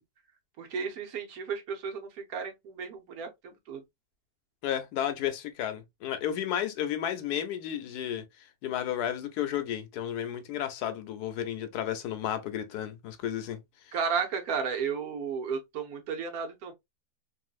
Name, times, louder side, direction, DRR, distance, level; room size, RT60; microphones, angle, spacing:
voice 1, 0.6-3.3 3.7-3.8 13.9-16.7, right 6 dB, 70° right, 1.2 m, -33 dB
voice 2, 4.6-8.2 8.6-13.6 13.9-14.0, left 10 dB, 80° left, 1.1 m, -32 dB
3.1 x 2.7 x 2.4 m
omnidirectional pair, 1.7 m